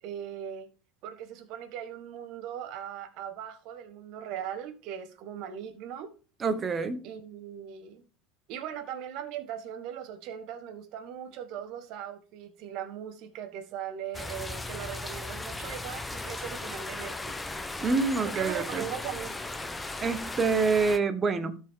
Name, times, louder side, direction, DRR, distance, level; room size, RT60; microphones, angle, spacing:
voice 1, 0.0-0.7 1.0-6.1 7.0-8.0 8.5-17.3 18.2-19.4, right 9 dB, 60° right, 1.4 m, -39 dB
voice 2, 6.4-7.0 17.8-18.8 20.0-21.6, right 4 dB, 30° right, 0.9 m, -27 dB
sound 1, 14.1-21.0, left 2 dB, 10° left, 0.8 m, -37 dB
13.0 x 4.7 x 3.7 m
supercardioid pair, 110°, 0 cm